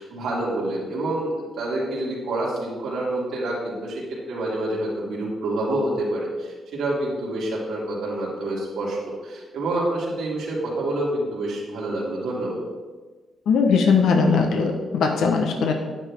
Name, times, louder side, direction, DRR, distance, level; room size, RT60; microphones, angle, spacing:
voice 1, 0.0-4.0 4.3-9.0 9.2-12.6, right 1 dB, 85° right, -5 dB, 2.7 m, -27 dB
voice 2, 13.5-15.7, left 5 dB, 90° left, 3 dB, 1.1 m, -19 dB
9.9 x 9.6 x 3.6 m, 1.3 s
wide cardioid pair, 180°, 0 cm